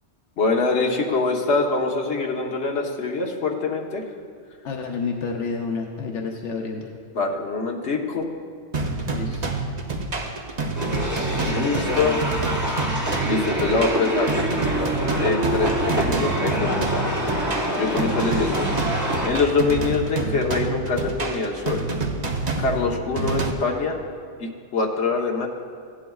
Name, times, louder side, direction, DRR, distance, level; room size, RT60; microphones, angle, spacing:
voice 1, 0.4-4.0 7.1-8.2 11.3-12.1 13.2-14.3 15.2-17.0 17.7-18.7 19.0-21.9 22.6-24.0 24.4-25.5, left 4 dB, 70° left, 0 dB, 1.4 m, -24 dB
voice 2, 4.6-6.9 9.1-9.5 11.4-12.2, left 4 dB, 90° left, 1 dB, 1.1 m, -30 dB
sound 1, 8.7-23.5, right 3 dB, 40° right, 0.9 m, -27 dB
sound 2, 10.8-19.3, equal, 15° right, 1.3 m, -26 dB
16.0 x 11.0 x 2.4 m, 2.1 s
omnidirectional pair, 1.2 m